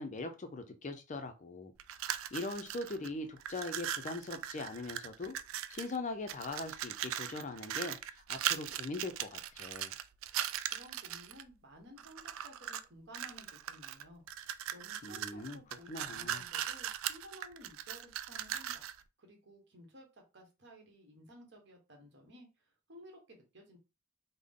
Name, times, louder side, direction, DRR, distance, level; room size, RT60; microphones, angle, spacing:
voice 1, 0.0-1.7 2.3-5.4 5.7-9.9 15.0-15.6 15.9-16.4, left 2 dB, 35° left, 0.4 m, -41 dB
sound 1, 1.8-3.1 3.4-6.0 6.3-11.4 12.0-12.8 13.1-19.0, right 11 dB, 80° right, 0.3 m, -39 dB
voice 2, 10.7-14.2 14.7-18.9 19.2-23.8, equal, 60° right, 1.1 m, -55 dB
3.6 x 2.1 x 3.6 m
head